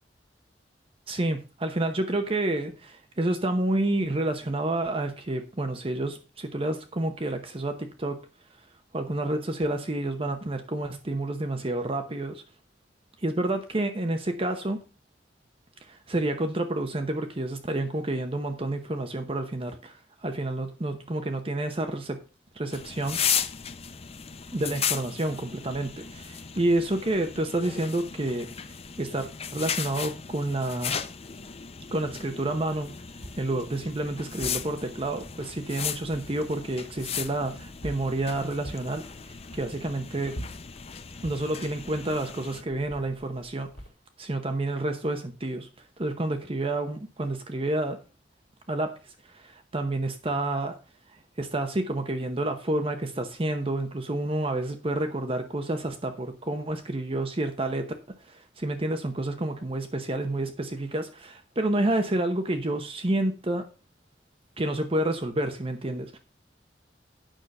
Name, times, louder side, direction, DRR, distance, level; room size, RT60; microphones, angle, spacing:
voice 1, 1.1-8.3 8.9-12.4 13.2-14.8 15.8-22.2 22.5-23.3 24.5-31.0 31.9-40.3 41.2-43.7 44.2-45.7 46.0-48.0 48.7-50.8 51.1-57.9 58.2-63.7 64.6-66.2, right 1 dB, 30° right, 0.9 m, -29 dB
sound 1, 22.7-42.6, left 8 dB, 35° left, 0.6 m, -36 dB
sound 2, 33.2-43.9, equal, 65° left, 2.1 m, -46 dB
9.1 x 6.2 x 5.3 m
head